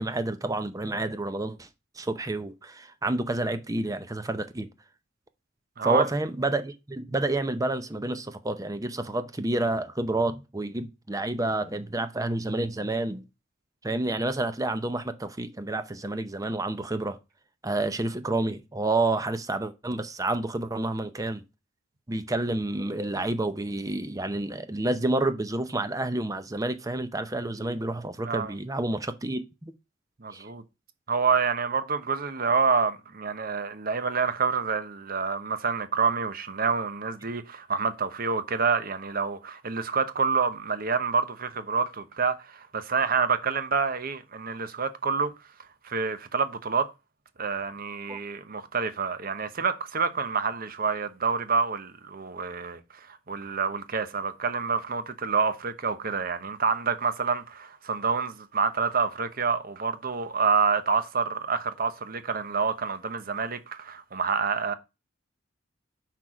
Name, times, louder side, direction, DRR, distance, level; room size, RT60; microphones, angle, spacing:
voice 1, 0.0-1.7 2.0-4.7 5.8-13.2 13.8-17.2 17.6-21.4 22.1-29.7 30.3-30.5 48.1-48.2, right 2 dB, 15° right, 0.7 m, -29 dB
voice 2, 5.8-6.1 28.2-28.5 30.2-30.6 31.1-45.3 45.8-46.9 47.4-52.8 53.1-64.8, right 5 dB, 45° right, 0.9 m, -27 dB
6.0 x 4.5 x 6.2 m
head